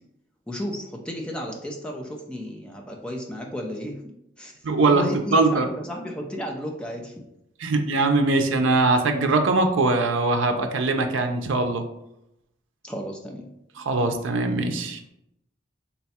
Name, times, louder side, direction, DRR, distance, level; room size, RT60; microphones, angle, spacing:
voice 1, 0.5-3.9 4.4-4.5 4.8-7.1 12.8-13.4, equal, 5° left, 0 dB, 0.5 m, -33 dB
voice 2, 4.6-5.7 7.6-11.9 13.8-15.0, right 3 dB, 80° right, 5 dB, 0.5 m, -22 dB
4.0 x 2.3 x 4.1 m, 0.81 s
head